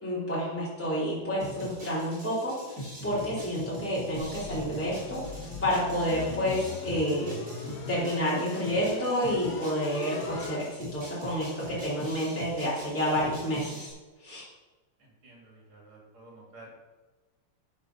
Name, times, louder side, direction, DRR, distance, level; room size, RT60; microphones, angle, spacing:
voice 1, 0.0-2.6 3.0-5.2 5.6-13.9 14.2-14.4, equal, 5° left, -8 dB, 2.8 m, -29 dB
sound 1, 1.4-13.9, equal, 40° right, 3.9 m, -42 dB
sound 2, 4.1-10.6, left 4 dB, 65° left, 1.7 m, -40 dB
voice 2, 15.0-16.7, right 2 dB, 65° right, -2 dB, 3.8 m, -52 dB
11.0 x 5.4 x 5.9 m, 1.2 s
omnidirectional pair, 2.4 m